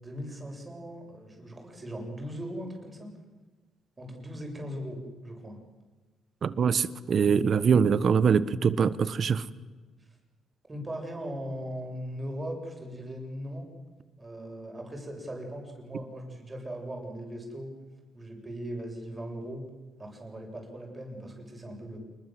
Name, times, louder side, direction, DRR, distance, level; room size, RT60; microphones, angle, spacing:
voice 1, 0.0-3.1 4.0-5.6 10.7-13.7 14.2-17.7 18.1-19.7 20.0-22.0, equal, 25° right, 2 dB, 7.5 m, -39 dB
voice 2, 6.4-9.4, right 6 dB, 55° right, 16 dB, 1.2 m, -23 dB
27.5 x 20.5 x 7.8 m, 1.3 s
cardioid pair, 90°, 0 cm